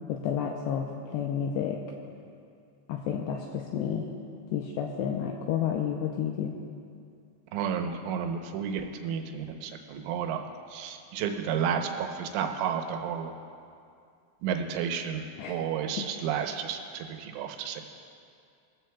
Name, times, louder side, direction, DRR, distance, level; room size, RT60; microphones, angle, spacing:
voice 1, 0.1-1.8 2.9-4.1 4.5-6.6 15.4-15.6 16.0-16.1, left 8 dB, 85° left, 1 dB, 2.4 m, -31 dB
voice 2, 7.5-10.4 10.7-13.3 14.4-17.8, right 7 dB, 85° right, 5 dB, 3.4 m, -32 dB
21.5 x 14.0 x 2.3 m, 2.4 s
omnidirectional pair, 5.5 m